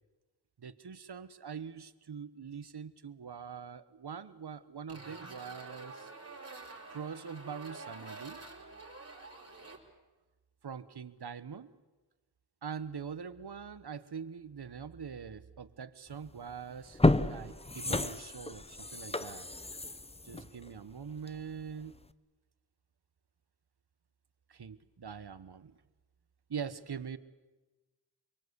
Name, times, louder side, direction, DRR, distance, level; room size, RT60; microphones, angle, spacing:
voice 1, 0.6-6.1 6.9-8.4 10.6-11.7 12.6-19.5 20.2-21.9 24.5-25.8 26.5-27.2, right 6 dB, 70° right, 14 dB, 1.3 m, -43 dB
sound 1, 4.9-9.8, right 3 dB, 35° right, 5.1 m, -48 dB
sound 2, 16.2-16.4 16.8-21.5 21.9-22.0, left 2 dB, 15° left, 0.8 m, -31 dB
25.5 x 24.0 x 8.2 m, 1.2 s
wide cardioid pair, 85°, 41 cm